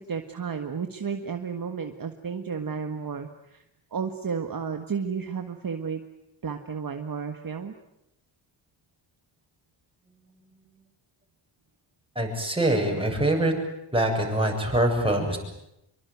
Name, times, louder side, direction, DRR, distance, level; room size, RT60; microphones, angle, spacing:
voice 1, 0.0-3.6 3.9-6.0 6.4-7.7, right 6 dB, 45° right, 6 dB, 1.7 m, -32 dB
voice 2, 12.1-13.5 13.9-15.4, right 1 dB, 10° right, 1 dB, 7.8 m, -24 dB
26.0 x 23.5 x 9.5 m, 0.83 s
wide cardioid pair, 115°, 49 cm